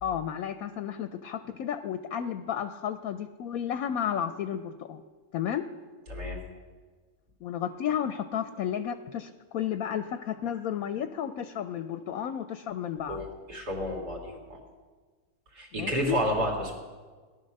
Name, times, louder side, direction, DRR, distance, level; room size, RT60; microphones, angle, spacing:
voice 1, 0.0-5.0 5.3-5.6 7.4-13.2 15.8-16.2, left 9 dB, 70° left, 9 dB, 1.0 m, -32 dB
voice 2, 13.1-14.6 15.5-16.8, equal, 70° right, -2 dB, 3.5 m, -31 dB
17.5 x 11.0 x 6.5 m, 1.4 s
omnidirectional pair, 1.8 m